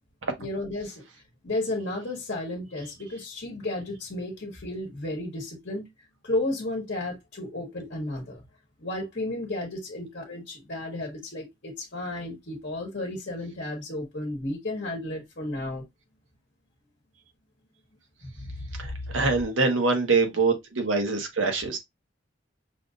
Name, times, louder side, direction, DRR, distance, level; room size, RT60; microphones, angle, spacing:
voice 1, 0.4-1.0 1.4-5.8 6.2-8.4 8.8-15.8 18.2-19.0, left 2 dB, 55° left, 1.2 m, -33 dB
voice 2, 18.8-21.8, right 3 dB, 80° right, 1.1 m, -24 dB
5.8 x 2.6 x 2.5 m
head